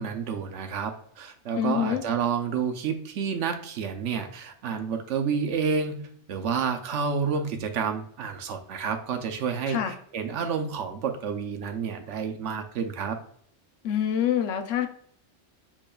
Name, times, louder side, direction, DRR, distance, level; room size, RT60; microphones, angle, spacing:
voice 1, 0.0-6.0 6.3-13.2, right 6 dB, 75° right, 5 dB, 1.0 m, -29 dB
voice 2, 1.6-2.0 9.7-9.9 13.8-14.9, left 9 dB, 85° left, 7 dB, 1.0 m, -26 dB
7.0 x 3.1 x 2.2 m, 0.63 s
omnidirectional pair, 1.2 m